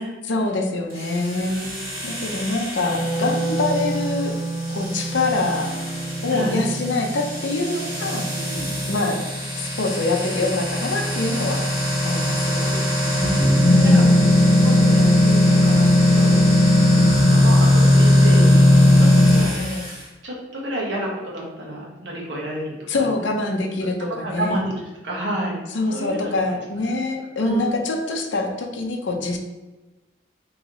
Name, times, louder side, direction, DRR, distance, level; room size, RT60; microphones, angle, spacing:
voice 1, 0.2-1.5 2.0-4.3 4.7-5.7 6.2-8.5 8.9-9.2 9.6-11.7 12.0-12.9 13.6-14.4 19.3-19.8 22.9-24.6 25.7-29.4, left 2 dB, 75° left, 2 dB, 0.5 m, -24 dB
sound 1, 0.9-20.0, left 1 dB, 15° right, 1.4 m, -19 dB
voice 2, 1.3-2.2 6.3-6.7 8.2-8.7 12.6-13.5 13.9-14.0 14.6-16.3 17.2-19.1 19.3-19.7 20.2-23.1 23.8-23.9 24.2-26.5 27.3-27.6 29.1-29.2, right 1 dB, 70° right, -3 dB, 1.1 m, -31 dB
Wind instrument woodwind instrument, 2.7-8.9, right 2 dB, 15° left, 1.2 m, -30 dB
3.2 x 3.0 x 3.6 m, 1.1 s
head